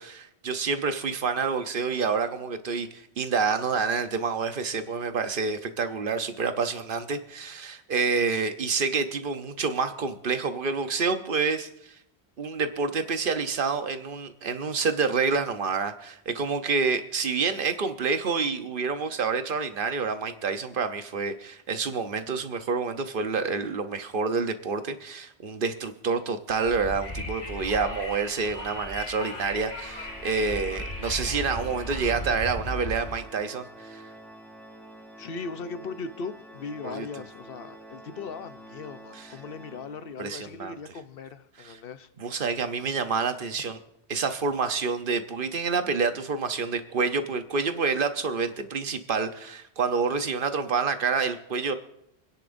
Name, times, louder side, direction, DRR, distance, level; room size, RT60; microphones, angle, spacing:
voice 1, 0.0-11.9 12.4-34.0 36.8-37.1 40.2-40.8 42.2-43.8 44.1-51.7, right 5 dB, 55° right, 1.0 m, -28 dB
Wind, 26.5-33.1, left 1 dB, 40° left, 1.7 m, -36 dB
Organ, 29.7-40.4, right 1 dB, ahead, 1.1 m, -48 dB
voice 2, 35.2-42.1, left 4 dB, 65° left, 0.9 m, -38 dB
27.0 x 10.0 x 2.6 m
omnidirectional pair, 1.1 m